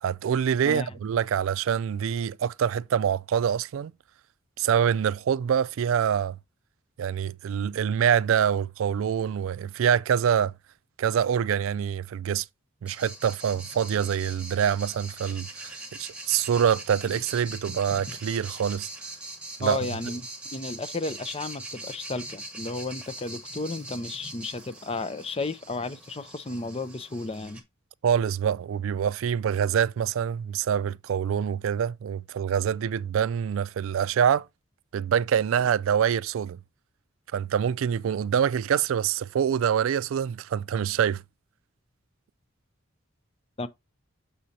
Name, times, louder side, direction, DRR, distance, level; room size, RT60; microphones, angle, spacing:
voice 1, 0.0-3.9 4.6-6.4 7.0-10.5 11.0-12.5 12.8-18.9 19.6-19.8 28.0-34.5 34.9-36.6 37.3-41.2, right 8 dB, 80° right, 0.3 m, -25 dB
sound 1, 12.9-27.6, right 2 dB, 5° right, 1.1 m, -41 dB
voice 2, 19.6-20.2 20.5-27.6 43.6-43.7, left 3 dB, 30° left, 0.5 m, -33 dB
6.9 x 6.4 x 2.8 m
head